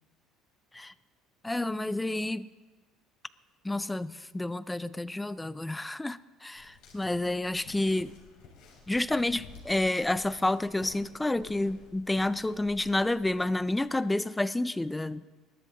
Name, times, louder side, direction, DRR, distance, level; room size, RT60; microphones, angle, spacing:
voice 1, 1.4-2.5 3.6-8.2 8.9-15.2, left 2 dB, 5° left, 0.4 m, -29 dB
sound 1, 6.6-14.0, left 4 dB, 65° left, 4.2 m, -53 dB
20.5 x 13.0 x 3.8 m
cardioid pair, 145°, 0 cm